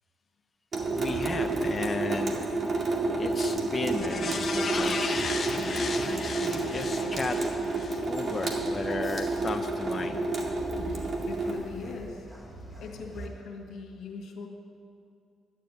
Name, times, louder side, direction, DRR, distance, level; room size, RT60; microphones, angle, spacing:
Water tap faucet / Sink (filling or washing) / Drip, 0.7-11.5, right 3 dB, 50° right, 2.1 m, -30 dB
sound 1, 0.8-13.3, right 2 dB, 5° right, 2.8 m, -47 dB
voice 1, 0.9-5.0 5.6-7.4 8.0-10.2, left 3 dB, 30° left, 4 dB, 0.7 m, -35 dB
sound 2, 3.9-8.5 8.9-9.0, left 4 dB, 45° left, 1.0 m, -34 dB
voice 2, 10.8-12.3 12.8-14.5, left 4 dB, 75° left, 2 dB, 2.0 m, -41 dB
12.0 x 7.5 x 9.3 m, 2.4 s
cardioid pair, 90°, 0 cm